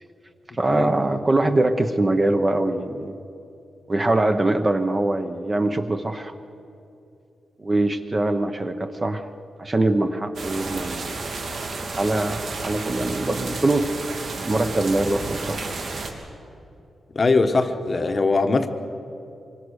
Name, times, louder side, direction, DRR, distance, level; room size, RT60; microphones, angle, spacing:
voice 1, 0.6-3.1 3.9-6.3 7.6-9.2 9.6-11.3 12.0-13.9 14.4-15.6, right 2 dB, 20° right, 6 dB, 1.0 m, -23 dB
sound 1, 10.3-16.1, right 3 dB, 60° right, 3.0 m, -32 dB
voice 2, 17.1-18.7, left 3 dB, 30° left, 7 dB, 1.1 m, -21 dB
26.0 x 23.0 x 6.5 m, 2.6 s
wide cardioid pair, 170°, 0 cm